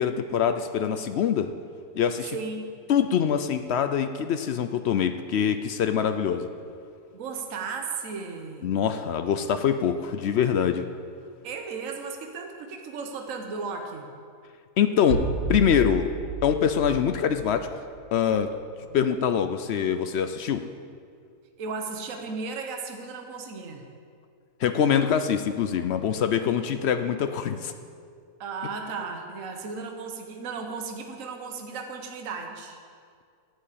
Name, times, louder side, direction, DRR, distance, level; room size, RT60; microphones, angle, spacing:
voice 1, 0.0-1.5 1.9-2.4 2.9-6.5 8.6-10.9 14.8-16.1 16.4-17.8 18.1-18.5 18.9-20.7 24.6-27.7, left 8 dB, 75° left, 9 dB, 0.6 m, -24 dB
voice 2, 2.3-2.6 7.1-8.7 11.4-14.1 18.9-19.0 21.6-23.9 28.4-32.8, right 4 dB, 55° right, 3 dB, 1.4 m, -35 dB
sound 1, 15.1-18.0, right 5 dB, 85° right, 1.6 m, -32 dB
11.0 x 7.8 x 8.5 m, 2.2 s
omnidirectional pair, 1.7 m